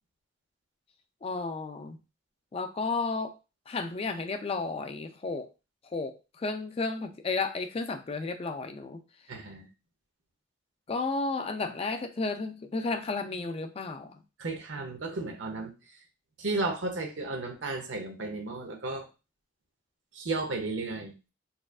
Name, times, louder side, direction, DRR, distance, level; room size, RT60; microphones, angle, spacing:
voice 1, 1.2-2.0 2.5-3.4 3.7-5.5 5.9-9.0 10.9-14.2, left 3 dB, 30° left, 7 dB, 0.4 m, -33 dB
voice 2, 9.3-9.7 14.4-15.7 16.4-19.0 20.1-21.1, right 3 dB, 85° right, 3 dB, 0.8 m, -33 dB
4.1 x 2.5 x 2.4 m, 0.29 s
head